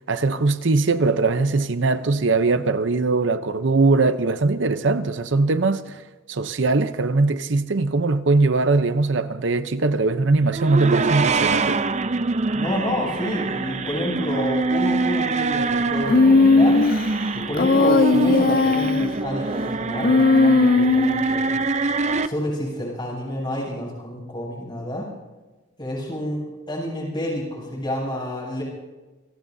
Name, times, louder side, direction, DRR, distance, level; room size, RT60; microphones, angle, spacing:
voice 1, 0.1-6.0 6.3-11.8, right 3 dB, 65° right, 0.7 m, -21 dB
sound 1, 10.5-22.3, right 3 dB, 35° right, 0.6 m, -24 dB
voice 2, 12.5-16.8 17.3-21.6 22.2-25.1 25.8-28.6, left 1 dB, 25° left, 7.5 m, -29 dB
Human voice, 16.1-17.0 17.6-19.1 20.0-21.3, left 3 dB, 45° left, 0.5 m, -17 dB
29.0 x 18.5 x 2.7 m
head